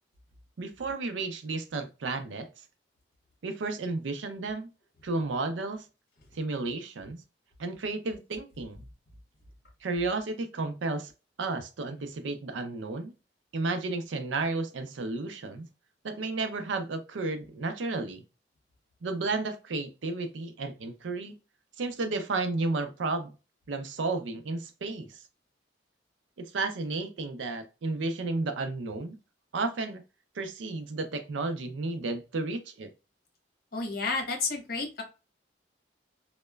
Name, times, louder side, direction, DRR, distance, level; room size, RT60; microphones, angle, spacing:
voice 1, 0.6-2.5 3.4-4.7 5.0-5.9 6.3-7.2 7.6-8.9 9.8-11.1 11.4-13.1 13.5-15.7 16.0-18.2 19.0-21.4 21.8-23.3 23.7-25.2 26.4-29.2 29.5-30.0 30.3-32.9, right 3 dB, 85° right, 0.5 m, -32 dB
voice 2, 33.7-35.0, left 4 dB, 55° left, 0.8 m, -31 dB
2.9 x 2.1 x 2.2 m
head